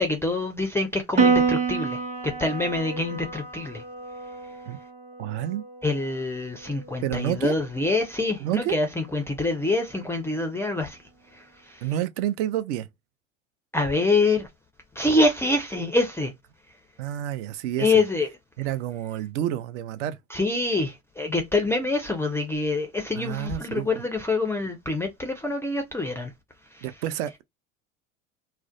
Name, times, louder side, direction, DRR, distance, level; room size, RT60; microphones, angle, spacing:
voice 1, 0.0-2.0 2.4-3.8 5.8-11.0 11.3-11.8 13.7-14.5 15.0-16.3 17.8-18.3 20.3-26.3 26.7-26.8, left 2 dB, 5° left, 0.3 m, -25 dB
Piano, 1.2-7.8, right 5 dB, 15° right, 0.8 m, -28 dB
voice 2, 5.2-5.6 7.0-7.6 8.4-8.8 11.8-12.9 17.0-17.9 18.6-20.2 23.1-24.0 26.8-27.4, right 12 dB, 60° right, 0.5 m, -29 dB
2.4 x 2.1 x 2.4 m
hypercardioid pair, 85°, 40 cm